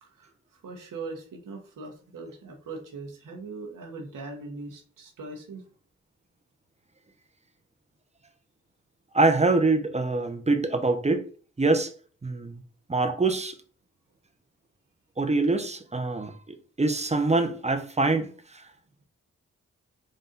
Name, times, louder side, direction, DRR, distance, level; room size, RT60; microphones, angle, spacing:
voice 1, 0.0-5.6, right 3 dB, 80° right, 1.2 m, -40 dB
voice 2, 9.1-11.3 11.6-11.9 12.2-12.6 12.9-13.6 15.2-18.6, right 3 dB, 20° right, 0.8 m, -25 dB
3.9 x 2.6 x 3.9 m
supercardioid pair, 45°, 32 cm